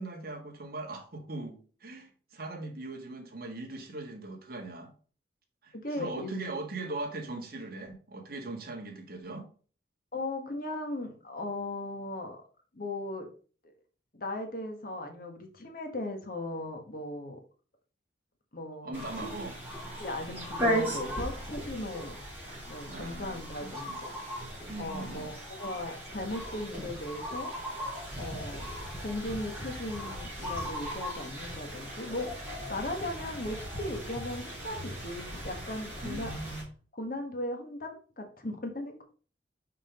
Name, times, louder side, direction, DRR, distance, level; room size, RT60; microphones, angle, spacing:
voice 1, 0.0-4.9 5.6-9.5 18.8-19.6 22.9-24.0 24.7-25.3 36.0-36.7, right 2 dB, 55° right, 1.8 m, -40 dB
voice 2, 5.8-6.4 10.1-12.4 12.7-13.3 14.1-17.4 18.5-19.4 20.0-22.2 22.7-24.1 24.8-27.5 28.2-28.7 29.0-32.3 32.7-36.3 36.9-39.0, left 1 dB, 50° left, 1.6 m, -37 dB
sound 1, 18.9-36.6, equal, 10° right, 3.3 m, -37 dB
5.7 x 5.1 x 5.1 m
head